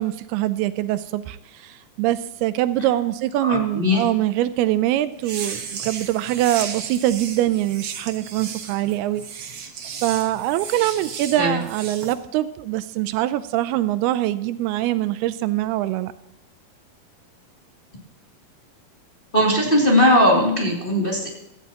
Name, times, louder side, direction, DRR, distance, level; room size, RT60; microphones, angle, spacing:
voice 1, 0.0-9.7 10.0-16.1, right 14 dB, 85° right, 13 dB, 2.6 m, -23 dB
voice 2, 3.4-4.0 11.4-11.6 19.3-21.3, left 1 dB, 15° left, -3 dB, 2.4 m, -18 dB
sound 1, 5.2-12.1, right 6 dB, 65° right, 1.3 m, -34 dB
17.0 x 14.0 x 3.0 m, 0.85 s
omnidirectional pair, 4.5 m